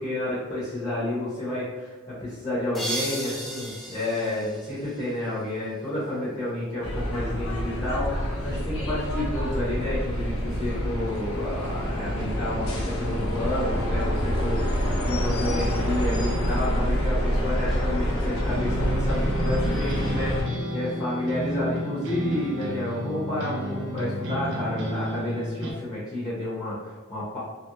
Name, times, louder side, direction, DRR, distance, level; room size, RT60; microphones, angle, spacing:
voice 1, 0.0-27.4, left 1 dB, 20° left, -9 dB, 0.8 m, -30 dB
sound 1, 2.7-5.5, right 1 dB, ahead, 0.4 m, -35 dB
sound 2, 6.8-20.4, equal, 75° left, 0.7 m, -27 dB
sound 3, 18.4-25.7, right 1 dB, 60° right, 0.6 m, -31 dB
3.1 x 2.4 x 3.0 m, 1.4 s
head